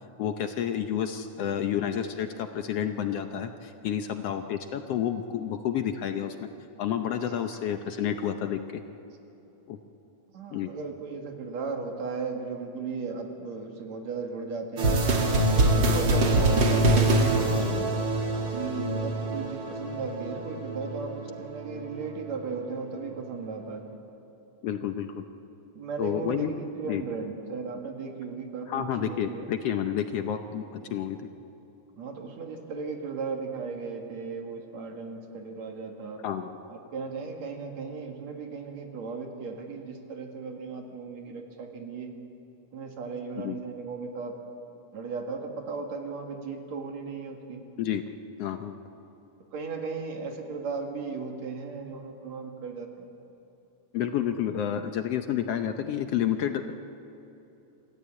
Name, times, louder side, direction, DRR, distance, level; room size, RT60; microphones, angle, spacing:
voice 1, 0.2-6.5 6.8-8.8 9.7-9.8 10.5-10.7 24.6-25.3 26.0-26.5 26.8-27.0 28.7-31.3 36.2-36.6 43.4-43.6 47.8-48.0 48.4-48.8 53.9-56.7, left 9 dB, 70° left, 7 dB, 1.6 m, -30 dB
voice 2, 10.3-15.0 15.5-17.9 18.5-23.8 25.7-29.5 30.9-31.0 32.0-36.2 36.7-42.1 42.7-44.4 44.9-47.6 49.5-53.1, right 4 dB, 70° right, 3 dB, 3.1 m, -36 dB
sound 1, 14.8-22.5, right 1 dB, 40° right, 2.4 m, -25 dB
27.0 x 14.5 x 8.6 m, 3.0 s
omnidirectional pair, 3.3 m